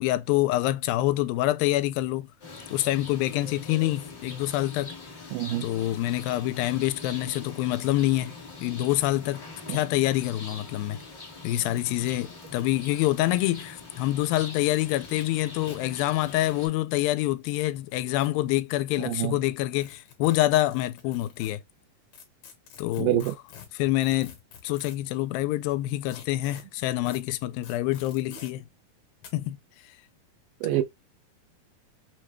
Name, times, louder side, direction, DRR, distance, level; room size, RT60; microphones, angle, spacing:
voice 1, 0.0-2.3 2.7-4.9 5.6-8.4 8.6-9.4 9.7-11.0 11.4-21.6 22.8-23.2 23.7-24.4 24.6-28.7 29.3-29.6, left 16 dB, 85° left, 2.3 m, -26 dB
sound 1, 2.4-16.7, left 3 dB, 40° left, 0.6 m, -43 dB
voice 2, 5.3-5.7 9.7-9.8 19.1-19.4 23.0-23.3 30.6-30.8, right 15 dB, 80° right, 2.2 m, -26 dB
sound 2, 11.0-11.1 11.2-11.3 11.7-11.8 12.1-13.5 14.1-15.2 15.6-15.8 16.2-16.6 17.7-18.6 19.8-21.5 22.1-25.1 26.1-26.6 27.0-27.2 27.6-28.5 29.2-29.3, left 7 dB, 60° left, 2.1 m, -48 dB
6.0 x 2.2 x 3.1 m
omnidirectional pair, 4.1 m